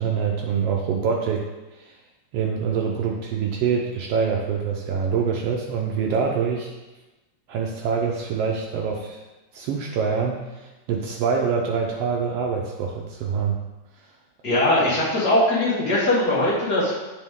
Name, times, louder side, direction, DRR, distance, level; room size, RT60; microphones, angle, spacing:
voice 1, 0.0-1.4 1.7-1.9 2.3-6.7 7.5-9.2 9.5-13.6, right 6 dB, 85° right, 0 dB, 1.3 m, -25 dB
voice 2, 14.4-16.9, left 1 dB, 40° left, -7 dB, 1.8 m, -20 dB
8.1 x 5.3 x 3.6 m, 1.1 s
omnidirectional pair, 3.6 m